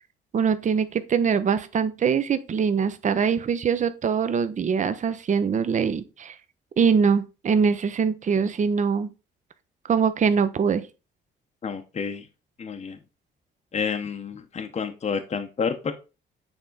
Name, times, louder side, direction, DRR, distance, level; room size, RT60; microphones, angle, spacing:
voice 1, 0.3-6.3 6.8-9.1 9.9-10.8, right 6 dB, 40° right, 0.6 m, -23 dB
voice 2, 11.6-12.3 12.6-13.0 13.7-15.9, left 6 dB, 35° left, 0.7 m, -29 dB
7.0 x 3.6 x 3.8 m
cardioid pair, 90°, 20 cm